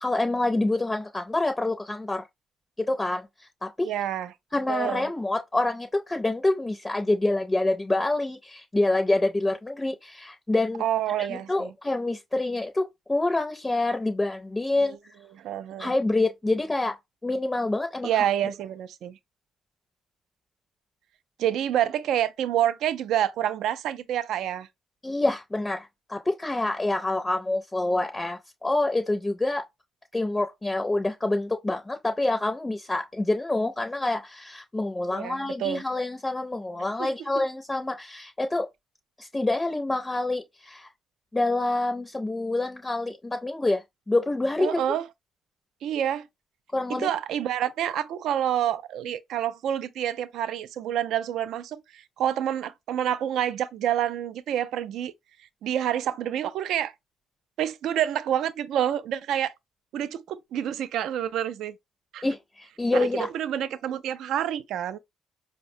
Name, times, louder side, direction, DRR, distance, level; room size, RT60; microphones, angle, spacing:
voice 1, 0.0-2.3 2.8-3.9 4.5-10.8 11.3-15.0 15.8-16.9 17.2-18.2 25.0-29.6 30.1-38.7 39.2-40.9 41.3-44.8 46.7-47.1 62.2-63.3, left 2 dB, 15° left, 0.4 m, -27 dB
voice 2, 3.8-4.3 4.7-5.1 10.8-11.7 14.8-15.0 15.3-15.9 18.0-19.2 21.4-24.7 35.1-35.8 37.0-37.1 44.6-45.1 45.8-46.3 46.9-55.1 55.6-56.9 57.6-59.5 59.9-61.7 62.1-62.2 62.9-63.1 63.3-65.0, right 10 dB, 80° right, 0.3 m, -28 dB
4.8 x 2.0 x 2.6 m
cardioid pair, 90°, 0 cm